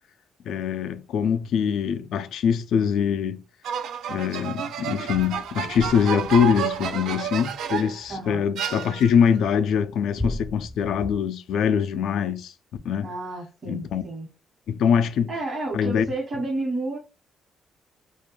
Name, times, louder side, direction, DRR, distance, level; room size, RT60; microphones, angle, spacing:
voice 1, 0.5-3.4 4.1-12.5 12.8-13.1 13.7-14.0 14.7-15.3 15.7-16.0, left 7 dB, 75° left, 0.3 m, -23 dB
sound 1, 3.6-8.0 8.6-9.3, right 8 dB, 80° right, 0.3 m, -30 dB
sound 2, 5.1-8.6 9.0-11.2, left 1 dB, 5° left, 0.4 m, -37 dB
voice 2, 8.1-8.5 13.0-14.3 15.3-17.0, right 2 dB, 50° right, 1.2 m, -31 dB
2.3 x 2.2 x 3.1 m
cardioid pair, 90°, 0 cm